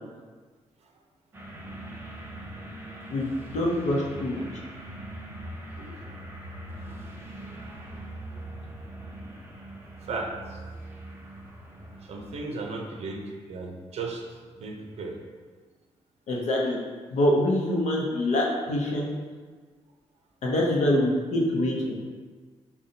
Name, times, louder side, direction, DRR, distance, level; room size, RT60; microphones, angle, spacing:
sound 1, 1.3-12.8, right 1 dB, 20° right, 0.5 m, -41 dB
voice 1, 3.1-4.4 16.3-16.8 17.1-19.1 20.4-21.9, left 1 dB, 70° left, -3 dB, 0.8 m, -25 dB
voice 2, 5.7-6.0 7.6-7.8 10.0-10.6 12.0-15.2, right 3 dB, 60° right, 1 dB, 0.6 m, -36 dB
5.2 x 2.3 x 2.7 m, 1.4 s
cardioid pair, 130°, 12 cm